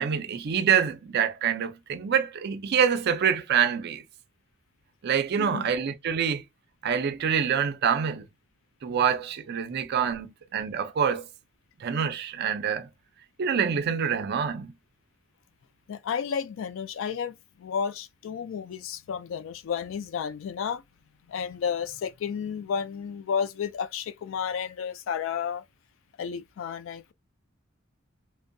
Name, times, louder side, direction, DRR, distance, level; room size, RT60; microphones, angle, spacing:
voice 1, 0.0-4.0 5.0-6.4 6.8-8.2 8.8-11.3 11.8-12.9 13.4-14.7, right 7 dB, 55° right, 0.4 m, -26 dB
voice 2, 5.4-5.7 8.9-9.0 15.9-20.8 21.3-25.6 26.2-27.1, left 7 dB, 70° left, 0.3 m, -32 dB
2.6 x 2.1 x 2.5 m
head